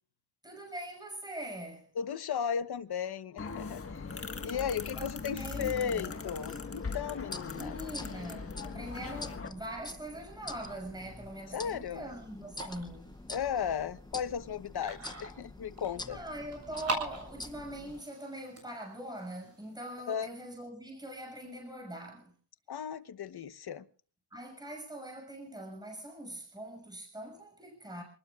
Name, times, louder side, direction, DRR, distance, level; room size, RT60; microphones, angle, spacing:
voice 1, 0.4-1.9 4.9-6.2 7.5-13.1 16.1-22.3 24.3-28.0, right 1 dB, 10° right, 6.6 m, -43 dB
voice 2, 2.0-7.8 11.5-12.1 13.3-16.2 20.1-20.3 22.7-23.8, left 8 dB, 50° left, 1.1 m, -35 dB
sound 1, 3.4-9.5, left 4 dB, 30° left, 1.6 m, -40 dB
sound 2, 6.4-18.0, left 2 dB, 10° left, 0.8 m, -47 dB
sound 3, 10.6-20.0, right 2 dB, 30° right, 7.8 m, -44 dB
28.0 x 20.0 x 2.4 m
wide cardioid pair, 150°, 47 cm